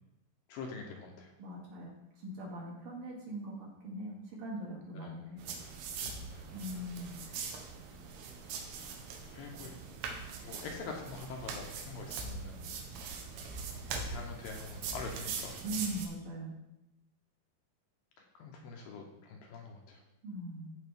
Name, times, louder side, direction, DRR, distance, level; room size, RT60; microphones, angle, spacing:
voice 1, 0.5-1.3 4.6-5.1 6.0-6.7 9.3-9.7 10.4-12.7 13.9-15.6 18.2-20.0, left 4 dB, 75° left, 1 dB, 2.4 m, -45 dB
voice 2, 1.4-5.4 6.5-7.2 8.8-8.9 15.6-16.6 20.2-20.7, right 1 dB, 55° right, -5 dB, 3.3 m, -41 dB
sound 1, 5.4-16.1, right 5 dB, 90° right, 3.1 m, -42 dB
14.0 x 5.0 x 3.6 m, 0.87 s
omnidirectional pair, 4.6 m